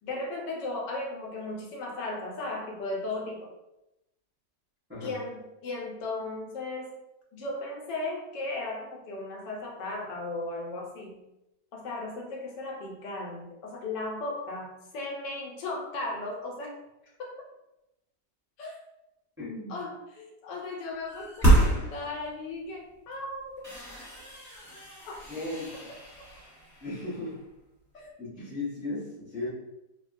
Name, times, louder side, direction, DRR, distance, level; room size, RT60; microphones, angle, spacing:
voice 1, 0.0-3.5 5.0-7.0 7.3-11.2 11.7-16.8 17.2-17.3 18.6-18.8 19.7-23.6 25.1-25.2 27.9-28.1, left 2 dB, 80° left, -1 dB, 1.3 m, -36 dB
voice 2, 19.4-19.8 25.3-25.7 26.8-27.4 27.9-29.5, left 2 dB, 20° right, -10 dB, 0.3 m, -36 dB
sound 1, 21.1-22.5 23.0-23.1 23.6-27.4, right 2 dB, ahead, 0.9 m, -28 dB
3.3 x 2.2 x 2.4 m, 0.92 s
omnidirectional pair, 1.9 m